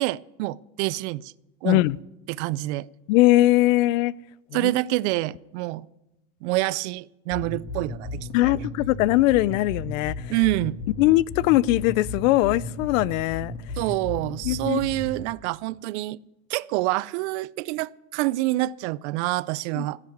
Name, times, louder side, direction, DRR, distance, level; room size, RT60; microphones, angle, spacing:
voice 1, 0.0-1.3 1.6-1.8 2.3-2.9 4.5-5.9 6.4-8.5 10.3-10.8 13.8-16.2 16.5-20.0, right 19 dB, 60° right, 21 dB, 0.5 m, -27 dB
voice 2, 1.6-2.0 3.1-4.1 4.6-4.7 8.3-10.1 11.0-13.5 14.5-14.8 19.8-19.9, left 17 dB, 75° left, 23 dB, 0.5 m, -20 dB
sound 1, 7.3-15.3, left 2 dB, 25° left, 1.9 m, -34 dB
15.5 x 7.4 x 9.4 m, 0.95 s
supercardioid pair, 160°, 40 cm